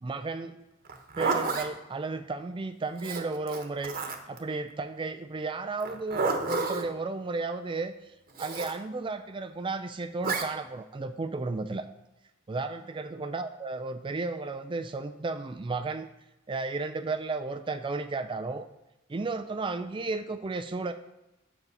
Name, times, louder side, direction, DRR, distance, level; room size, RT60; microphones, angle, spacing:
voice 1, 0.0-0.6 1.2-4.0 4.3-11.8 12.5-16.1 16.5-18.7 19.1-20.9, right 3 dB, 25° right, 9 dB, 0.4 m, -33 dB
Zipper (clothing), 0.8-1.7 3.0-4.4 5.8-6.9 8.4-8.8 10.2-10.5, right 4 dB, 45° right, 1.1 m, -30 dB
8.2 x 7.1 x 5.4 m, 0.97 s
head